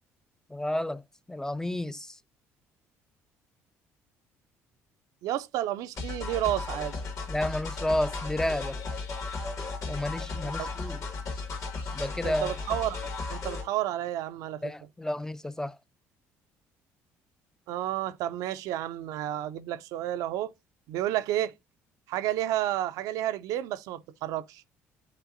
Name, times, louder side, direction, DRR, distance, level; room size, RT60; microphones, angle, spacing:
voice 1, 0.5-1.0 1.3-2.2 7.3-8.8 9.9-11.0 11.9-12.5 14.6-15.8, left 1 dB, 10° left, 0.4 m, -31 dB
voice 2, 5.2-6.9 10.4-10.7 12.2-13.0 13.3-14.7 17.7-20.5 20.9-21.5 22.1-24.7, right 13 dB, 75° right, 0.4 m, -31 dB
sound 1, 6.0-13.7, left 4 dB, 55° left, 1.8 m, -35 dB
10.5 x 3.9 x 2.5 m
supercardioid pair, 65°, 6 cm